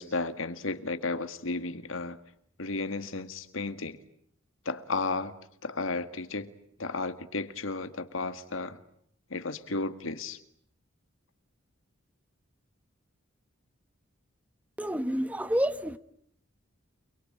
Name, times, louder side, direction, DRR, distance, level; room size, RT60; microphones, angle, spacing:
voice 1, 0.0-2.2 2.6-4.0 4.7-5.4 5.6-6.5 6.8-8.8 9.3-10.4, left 3 dB, 70° left, 10 dB, 1.9 m, -33 dB
voice 2, 14.8-16.0, equal, 5° right, 11 dB, 1.1 m, -29 dB
29.5 x 22.5 x 8.8 m, 0.69 s
head